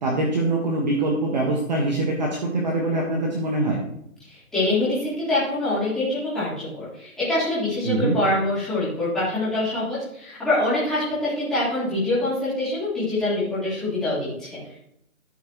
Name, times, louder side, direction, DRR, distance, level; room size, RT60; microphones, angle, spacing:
voice 1, 0.0-3.8 7.8-8.2, right 2 dB, 30° right, -1 dB, 1.4 m, -23 dB
voice 2, 4.2-14.6, left 2 dB, ahead, -13 dB, 3.6 m, -25 dB
14.0 x 8.0 x 3.0 m, 0.76 s
hypercardioid pair, 170°, 43 cm